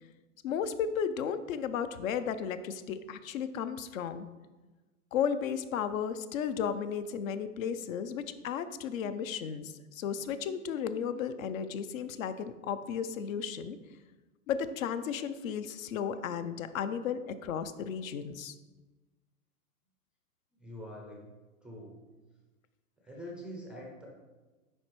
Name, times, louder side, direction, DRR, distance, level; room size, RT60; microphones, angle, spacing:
voice 1, 0.4-4.3 5.1-13.8 14.5-18.5, left 7 dB, 75° left, 12 dB, 0.6 m, -34 dB
voice 2, 20.6-21.3 21.6-22.0 23.0-24.1, equal, 5° right, -2 dB, 0.3 m, -44 dB
9.7 x 3.3 x 3.0 m, 1.2 s
hypercardioid pair, 125°, 41 cm